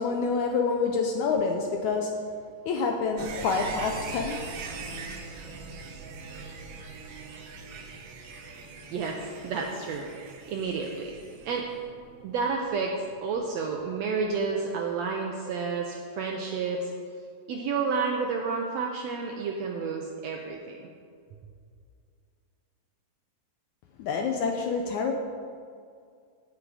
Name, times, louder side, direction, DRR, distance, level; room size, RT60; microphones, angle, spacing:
voice 1, 0.0-2.1 2.7-4.4 24.0-25.1, left 4 dB, 75° left, 3 dB, 1.8 m, -27 dB
sound 1, 3.2-14.0 14.3-14.4, right 4 dB, 65° right, 1.5 m, -42 dB
voice 2, 8.9-11.7 12.2-16.9 17.5-20.9, right 4 dB, 80° right, 1 dB, 1.5 m, -31 dB
16.0 x 6.3 x 4.9 m, 2.2 s
omnidirectional pair, 3.9 m